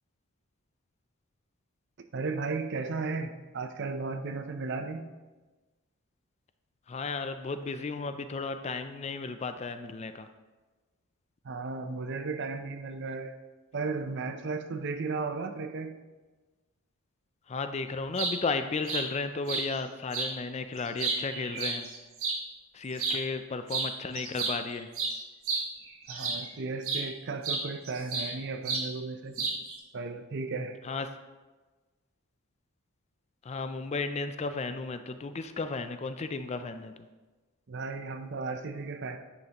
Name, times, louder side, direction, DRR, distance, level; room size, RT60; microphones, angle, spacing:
voice 1, 2.1-5.1 11.4-13.4 13.7-15.9 26.1-29.4 29.9-30.8 37.7-39.2, right 4 dB, 50° right, 8 dB, 0.5 m, -35 dB
voice 2, 6.9-10.3 17.5-21.9 22.7-24.9 30.9-31.1 33.5-36.9, left 4 dB, 30° left, 9 dB, 0.3 m, -34 dB
sound 1, 18.0-18.4 18.9-19.1 19.5-19.7 20.1-20.3 20.8-22.4 22.9-23.2 23.7-23.9 24.2-26.5 26.8-27.1 27.4-28.3 28.7-28.9 29.4-29.8, right 4 dB, 70° right, 1.3 m, -31 dB
9.8 x 6.6 x 2.9 m, 1.2 s
head